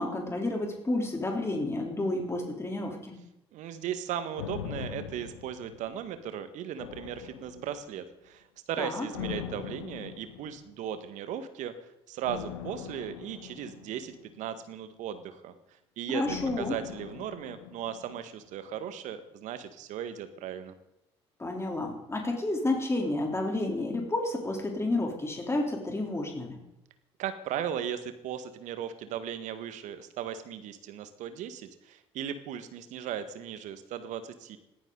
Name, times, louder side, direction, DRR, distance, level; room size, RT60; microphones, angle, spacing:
voice 1, 0.0-3.2 8.8-9.1 16.1-16.8 21.4-26.6, left 2 dB, 20° left, 1 dB, 3.6 m, -30 dB
voice 2, 3.5-11.7 12.1-15.5 16.0-20.7 27.2-34.6, right 9 dB, 60° right, 10 dB, 1.7 m, -37 dB
sound 1, 4.4-6.3 6.8-8.0 9.1-10.8 12.2-14.6 16.2-18.4 18.7-18.8, left 9 dB, 80° left, 1.3 m, -42 dB
20.5 x 15.0 x 4.0 m, 0.89 s
hypercardioid pair, 55°, 14 cm